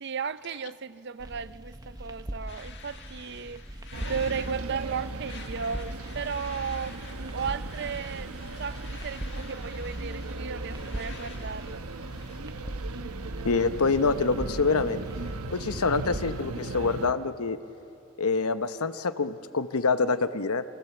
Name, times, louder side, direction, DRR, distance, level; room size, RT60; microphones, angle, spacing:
voice 1, 0.0-3.6 4.1-7.0 7.3-11.8, right 6 dB, 50° right, 0.5 m, -35 dB
sound 1, 1.2-16.4, right 1 dB, 15° right, 0.9 m, -41 dB
sound 2, 2.5-12.4, left 6 dB, 50° left, 1.7 m, -49 dB
sound 3, 3.9-17.1, right 2 dB, 85° right, 1.1 m, -37 dB
voice 2, 13.4-15.0 15.5-17.6 18.2-20.6, left 4 dB, 85° left, 0.9 m, -26 dB
29.0 x 23.5 x 7.1 m
head